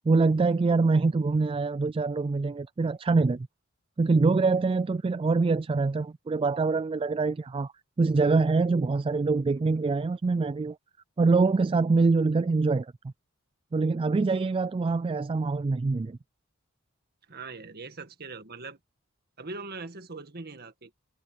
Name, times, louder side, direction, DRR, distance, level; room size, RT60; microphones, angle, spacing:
voice 1, 0.0-3.5 4.0-7.7 8.0-10.8 11.2-12.9 13.7-16.2, right 3 dB, 25° right, 0.3 m, -24 dB
voice 2, 17.3-18.8 19.4-20.9, right 3 dB, 50° right, 1.8 m, -41 dB
head